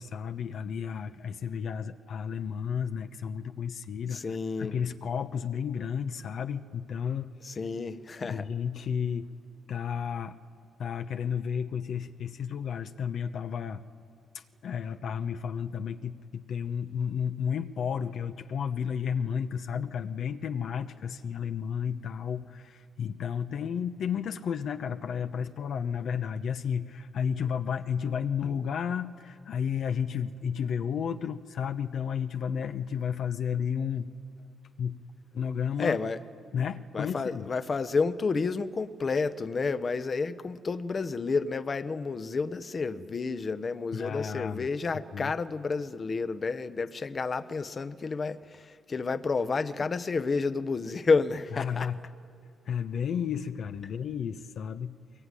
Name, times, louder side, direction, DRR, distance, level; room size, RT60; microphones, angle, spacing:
voice 1, 0.0-7.3 8.2-9.3 9.7-10.4 10.8-13.8 14.3-34.1 34.8-35.0 35.3-36.0 36.5-37.5 43.9-44.7 45.1-45.3 51.6-51.9 52.6-55.0, left 7 dB, 65° left, 8 dB, 0.9 m, -32 dB
voice 2, 4.1-4.7 7.4-8.5 35.8-36.2 36.9-51.9, left 4 dB, 35° left, 12 dB, 0.9 m, -30 dB
22.0 x 22.0 x 9.8 m, 2.4 s
cardioid pair, 90°, 0 cm